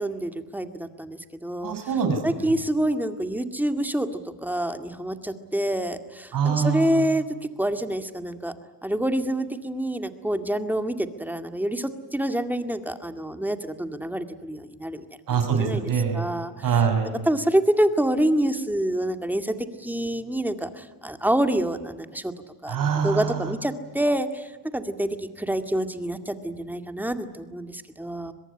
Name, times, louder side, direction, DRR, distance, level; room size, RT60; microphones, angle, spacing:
voice 1, 0.0-1.8 2.2-8.6 8.8-15.1 15.6-15.8 16.1-16.5 17.3-22.3 22.6-22.8 23.0-28.3, right 1 dB, 5° right, 8 dB, 2.0 m, -27 dB
voice 2, 1.6-2.5 6.3-7.0 15.3-16.2 16.6-17.1 22.7-23.5, right 6 dB, 50° right, 6 dB, 6.5 m, -24 dB
24.0 x 21.5 x 9.9 m, 1.3 s
cardioid pair, 115°, 41 cm